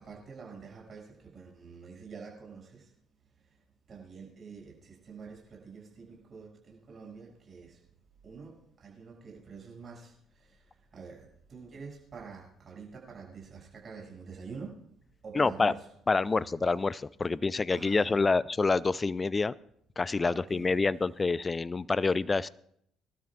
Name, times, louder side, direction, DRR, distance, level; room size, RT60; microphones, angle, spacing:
voice 1, 0.0-2.9 3.3-7.8 8.2-14.9 15.2-15.9 17.7-18.1 20.2-20.9, right 5 dB, 45° right, 7.0 m, -47 dB
voice 2, 15.4-15.7 16.1-19.5 20.0-22.5, left 4 dB, 30° left, 0.4 m, -27 dB
25.5 x 12.5 x 2.5 m
hypercardioid pair, 50°, 0 cm